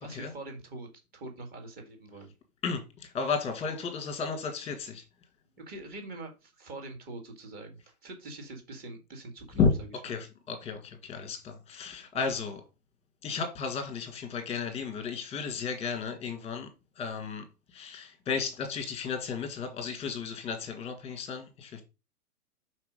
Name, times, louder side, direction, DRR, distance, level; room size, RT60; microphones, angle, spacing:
voice 1, 0.0-2.3 5.6-9.6, right 2 dB, 20° right, 2.0 m, -44 dB
voice 2, 2.6-5.0 9.5-9.7 10.0-12.6 13.2-16.7 17.0-21.8, left 5 dB, 15° left, 1.7 m, -33 dB
5.8 x 4.6 x 5.1 m
hypercardioid pair, 135°, 46 cm